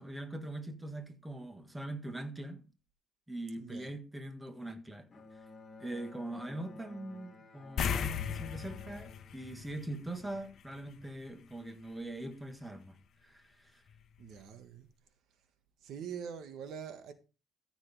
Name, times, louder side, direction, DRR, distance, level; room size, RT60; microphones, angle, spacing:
voice 1, 0.0-2.6 3.3-5.1 5.8-13.8, right 1 dB, 10° right, 1.6 m, -42 dB
voice 2, 3.6-4.0 14.2-14.9 15.8-17.1, right 7 dB, 65° right, 1.7 m, -44 dB
Bowed string instrument, 5.1-10.6, left 3 dB, 30° left, 2.7 m, -53 dB
sound 1, 7.8-10.6 10.9-11.0 13.9-14.0 14.4-14.5, left 7 dB, 50° left, 1.0 m, -36 dB
14.0 x 7.2 x 3.5 m
cardioid pair, 135°, 0 cm